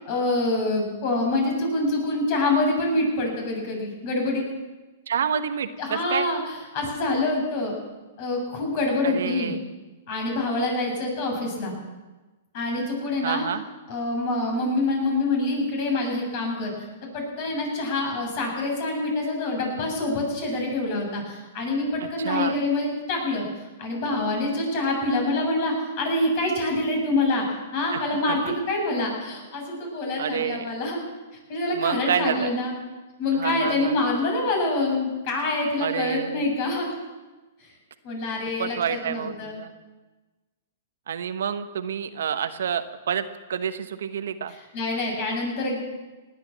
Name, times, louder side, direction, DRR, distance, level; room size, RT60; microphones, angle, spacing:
voice 1, 0.1-4.4 5.8-7.7 8.2-9.5 10.1-11.7 12.5-13.5 13.9-16.7 17.0-23.5 23.8-27.4 27.7-31.0 31.5-32.7 33.2-36.9 37.6-37.7 38.0-39.6 44.7-45.8, left 2 dB, 50° left, 1 dB, 7.3 m, -26 dB
voice 2, 5.1-6.3 9.0-9.6 13.2-13.6 22.0-22.6 27.9-28.5 30.2-30.7 31.7-32.5 33.3-34.0 35.8-36.5 38.6-39.7 41.1-43.2 43.5-44.5, right 8 dB, 75° right, 9 dB, 1.1 m, -28 dB
18.5 x 9.7 x 7.2 m, 1.2 s
hypercardioid pair, 130°, 0 cm